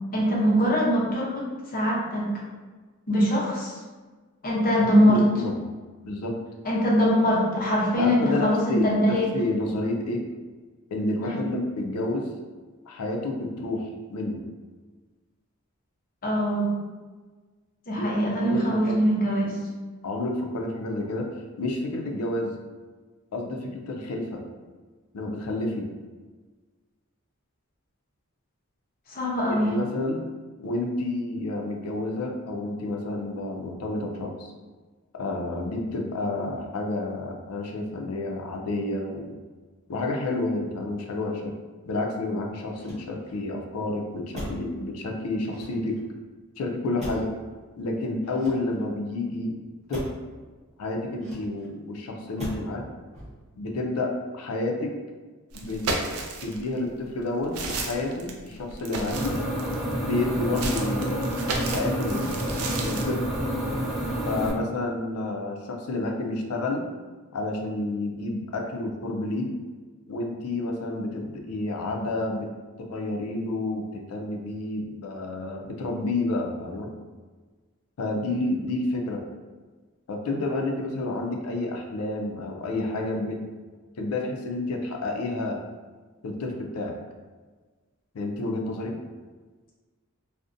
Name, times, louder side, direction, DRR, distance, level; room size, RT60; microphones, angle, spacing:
voice 1, 0.1-2.3 3.1-3.7 4.4-5.2 6.6-9.3 11.2-11.5 16.2-16.7 17.9-19.5 29.1-29.7, equal, 40° left, -4 dB, 0.6 m, -22 dB
voice 2, 4.8-5.6 6.0-6.3 8.0-10.2 10.9-12.3 12.9-14.4 18.0-19.0 20.0-21.3 21.6-22.5 23.3-24.4 25.1-25.9 29.5-30.2 30.6-34.5 35.1-39.4 39.9-41.5 41.9-46.0 46.6-47.3 47.8-49.6 49.9-50.0 50.8-52.8 53.6-54.9 55.5-55.8 56.4-59.3 60.0-61.2 61.7-63.2 64.2-66.9 67.3-69.5 70.1-72.5 72.8-76.9 78.0-79.2 80.1-83.4 84.0-85.6 86.2-86.9 88.1-88.9, left 2 dB, 85° left, 2 dB, 0.4 m, -30 dB
Motor vehicle (road), 42.7-43.5 44.3-44.8 45.4-46.1 47.0-47.5 48.2-49.0 49.9-50.3 51.2-51.8 52.4-52.8 53.1-53.6, equal, 30° right, 0.8 m, -39 dB
sound 1, 55.5-56.7 57.2-59.9 60.5-63.0, right 3 dB, 80° right, 0.4 m, -33 dB
sound 2, 59.1-64.5, equal, ahead, 0.5 m, -28 dB
2.5 x 2.1 x 2.5 m, 1.4 s
head